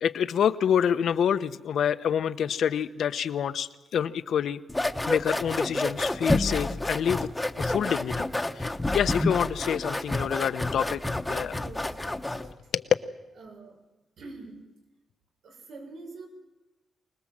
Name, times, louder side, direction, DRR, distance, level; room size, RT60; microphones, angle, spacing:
voice 1, 0.0-4.6 5.1-7.3 7.6-8.3 8.6-11.0 11.3-11.6 12.4-12.5 12.7-12.8, left 8 dB, 70° left, 12 dB, 0.9 m, -27 dB
sound 1, 4.7-12.5, left 2 dB, 10° left, 1.0 m, -29 dB
voice 2, 11.5-12.5 13.4-13.8 14.2-14.6 15.4-16.3, right 3 dB, 90° right, 1 dB, 6.2 m, -45 dB
25.0 x 20.0 x 7.6 m, 1.1 s
wide cardioid pair, 130°, 0 cm